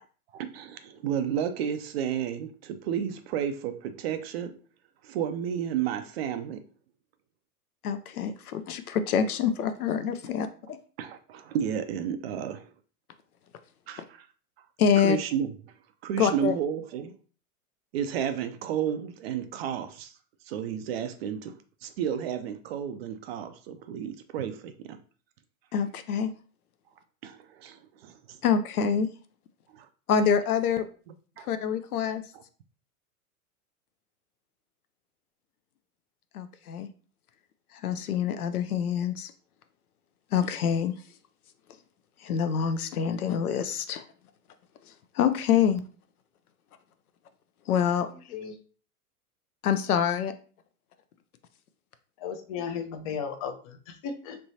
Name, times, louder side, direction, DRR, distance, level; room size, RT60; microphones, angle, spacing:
voice 1, 0.3-4.6 5.0-6.6 11.0-12.6 13.9-14.3 15.0-15.5 16.0-17.1 17.9-20.1 20.5-25.0 27.2-28.4 29.7-29.9 31.4-31.5 32.3-32.4, right 9 dB, 45° right, 0.4 m, -32 dB
voice 2, 7.8-10.5 14.8-15.2 16.2-16.6 25.7-26.3 28.4-29.1 30.1-30.9 31.4-32.2 36.3-36.9 37.8-39.3 40.3-40.9 42.2-44.0 45.1-45.8 47.7-48.1 49.6-50.3, left 7 dB, 75° left, 0.6 m, -26 dB
voice 3, 52.2-54.4, left 7 dB, 25° left, 0.4 m, -35 dB
3.3 x 2.9 x 2.6 m
figure-of-eight pair, 100°, 45 cm